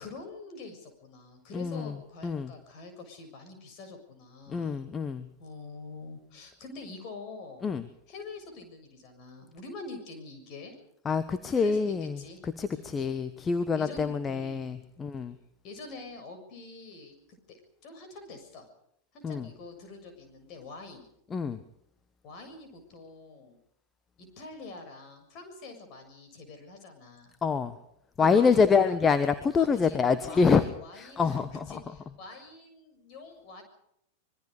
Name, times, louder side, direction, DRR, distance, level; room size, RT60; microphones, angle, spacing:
voice 1, 0.0-4.8 5.4-7.6 8.1-10.7 11.5-12.4 12.7-12.9 13.7-14.7 15.6-17.1 17.5-17.6 17.8-18.7 19.1-21.1 22.2-23.6 24.2-27.3 28.2-28.9 29.6-33.6, left 3 dB, 40° left, 6 dB, 7.1 m, -45 dB
voice 2, 1.5-2.0 2.2-2.5 4.5-5.2 7.6-7.9 11.0-15.4 19.2-19.5 21.3-21.6 27.4-27.7 28.2-30.6 30.9-31.8, left 5 dB, 20° left, 11 dB, 1.3 m, -26 dB
26.0 x 22.0 x 5.1 m, 0.78 s
figure-of-eight pair, 90°, 0 cm